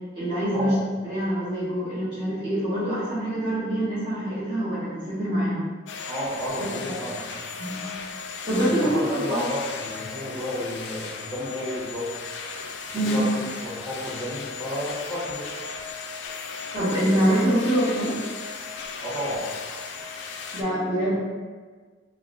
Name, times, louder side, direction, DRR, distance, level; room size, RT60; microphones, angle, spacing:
voice 1, 0.1-0.7 1.0-5.6 6.9-7.0 7.6-7.8 8.5-9.4 12.9-13.2 16.7-18.2 20.5-21.1, right 1 dB, 25° right, -13 dB, 0.9 m, -25 dB
sound 1, 5.9-20.6, left 5 dB, 70° left, 0.3 m, -36 dB
voice 2, 6.1-7.4 8.6-12.0 12.9-15.4 19.0-19.4, equal, 5° right, -15 dB, 1.1 m, -32 dB
4.6 x 2.1 x 2.4 m, 1.5 s
head